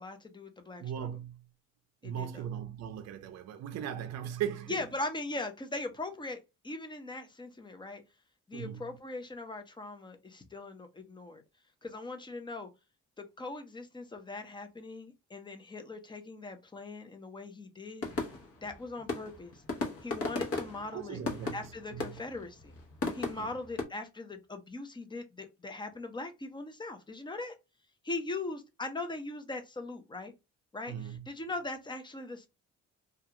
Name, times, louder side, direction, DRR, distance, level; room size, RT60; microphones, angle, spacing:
voice 1, 0.0-1.1 2.0-2.4 4.7-8.0 8.5-11.4 11.8-12.7 13.2-18.1 18.6-19.6 20.0-21.2 21.5-22.7 23.1-27.5 28.0-30.3 30.7-32.5, left 2 dB, 15° left, 0.6 m, -40 dB
voice 2, 0.8-1.5 2.0-4.8 8.5-8.9 20.9-21.7 21.9-22.2 23.3-23.5 30.9-31.3, right 9 dB, 60° right, 0.5 m, -38 dB
sound 1, 18.0-23.8, left 3 dB, 50° left, 0.9 m, -36 dB
2.4 x 2.3 x 2.8 m
cardioid pair, 90°, 30 cm